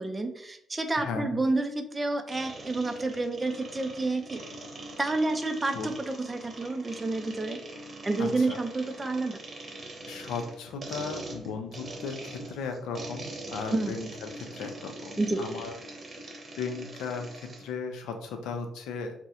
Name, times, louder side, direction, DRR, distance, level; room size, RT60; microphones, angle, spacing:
voice 1, 0.0-4.4 5.0-7.6 8.0-9.4 13.7-14.0 15.2-15.5, right 2 dB, 20° right, 6 dB, 0.4 m, -29 dB
voice 2, 1.0-1.3 5.7-5.9 8.2-8.6 10.1-15.7 16.6-19.1, left 5 dB, 90° left, 6 dB, 0.5 m, -36 dB
sound 1, 2.3-17.7, right 2 dB, 40° right, 0.8 m, -43 dB
2.7 x 2.1 x 3.5 m, 0.72 s
cardioid pair, 90°, 0 cm